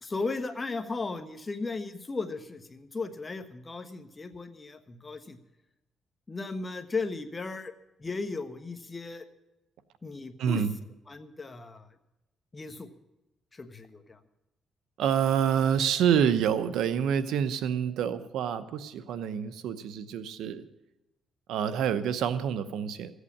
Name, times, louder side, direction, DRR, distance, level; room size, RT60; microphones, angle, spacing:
voice 1, 0.0-5.4 6.3-7.7 8.0-9.2 10.0-10.6 11.1-11.9 12.5-12.9 13.5-14.2, left 3 dB, 25° left, 8 dB, 1.2 m, -36 dB
voice 2, 10.4-10.7 15.0-20.7 21.5-23.1, right 8 dB, 80° right, 13 dB, 0.8 m, -27 dB
15.0 x 8.2 x 8.5 m, 0.97 s
cardioid pair, 90°, 0 cm